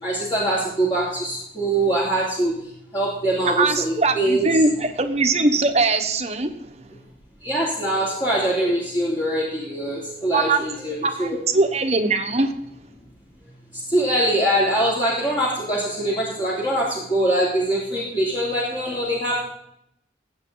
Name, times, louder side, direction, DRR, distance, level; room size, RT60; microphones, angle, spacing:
voice 1, 0.0-4.5 7.4-11.4 13.7-19.5, right 1 dB, 25° left, -6 dB, 3.0 m, -23 dB
voice 2, 3.6-6.9 10.3-10.6 11.0-12.5, right 3 dB, 40° right, 6 dB, 1.3 m, -21 dB
19.5 x 8.4 x 4.0 m, 0.75 s
head